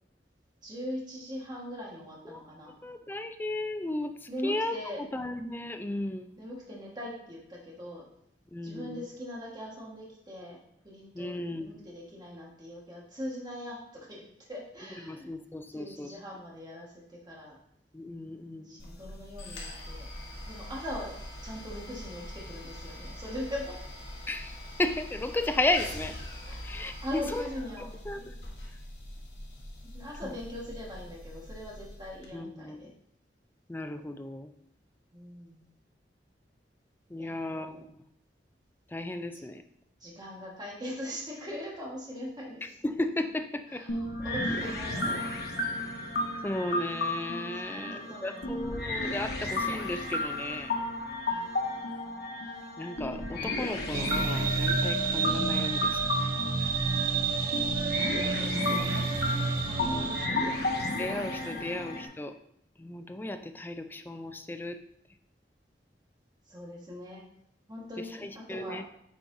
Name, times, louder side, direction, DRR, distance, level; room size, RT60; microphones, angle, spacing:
voice 1, 0.6-2.7 4.3-5.0 6.4-8.1 8.6-10.6 10.8-14.2 14.5-15.3 15.7-17.6 18.7-20.1 20.5-21.1 21.4-23.7 26.5-26.7 27.0-27.9 28.1-28.4 29.8-32.9 35.1-35.7 37.2-37.8 39.3-39.4 40.0-42.6 43.7-45.3 47.7-48.6 51.3-52.2 57.0-57.1 58.3-59.1 59.7-60.4 61.1-61.6 66.5-67.2 67.7-68.8, left 1 dB, 25° right, -4 dB, 1.5 m, -41 dB
voice 2, 2.3-4.8 5.1-6.3 8.5-9.0 11.1-11.8 15.0-16.2 17.9-18.8 24.3-26.2 26.6-27.5 27.8-28.3 30.2-30.3 32.3-32.9 33.7-34.5 37.1-38.0 38.9-39.6 42.6-43.8 46.4-50.7 52.8-56.3 56.6-56.7 59.8-60.1 61.0-62.3 62.8-64.8 68.0-68.8, left 2 dB, 10° left, 8 dB, 0.4 m, -35 dB
sound 1, 18.8-32.3, left 1 dB, 80° left, 1.4 m, -43 dB
sound 2, 43.9-62.1, left 2 dB, 60° left, 1.1 m, -33 dB
sound 3, 53.9-60.3, right 4 dB, 55° right, 0.6 m, -29 dB
8.2 x 4.6 x 2.7 m, 0.73 s
head